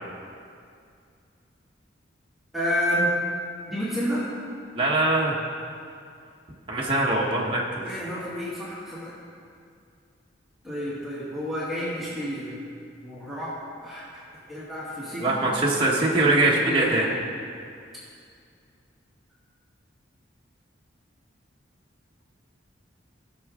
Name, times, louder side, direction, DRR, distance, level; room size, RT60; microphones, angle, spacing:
voice 1, 2.5-3.1 3.7-4.3 7.8-9.2 10.6-12.5 13.0-13.5 13.8-14.2 14.5-15.4 16.2-17.1, equal, ahead, -10 dB, 2.0 m, -30 dB
voice 2, 4.7-5.4 6.7-7.8 15.2-17.1, right 2 dB, 25° right, -4 dB, 1.2 m, -22 dB
16.5 x 6.2 x 3.6 m, 2.4 s
head